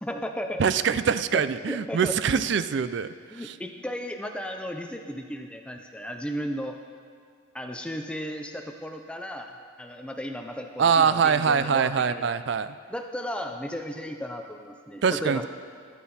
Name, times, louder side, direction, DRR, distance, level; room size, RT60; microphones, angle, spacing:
voice 1, 0.0-0.6 1.3-1.4 1.7-2.4 3.3-6.8 7.5-9.5 9.8-12.4 12.9-15.5, equal, 5° left, 4 dB, 0.5 m, -35 dB
voice 2, 0.6-3.6 10.8-12.8 15.0-15.5, right 6 dB, 60° right, 14 dB, 0.4 m, -24 dB
14.0 x 10.5 x 4.2 m, 2.1 s
head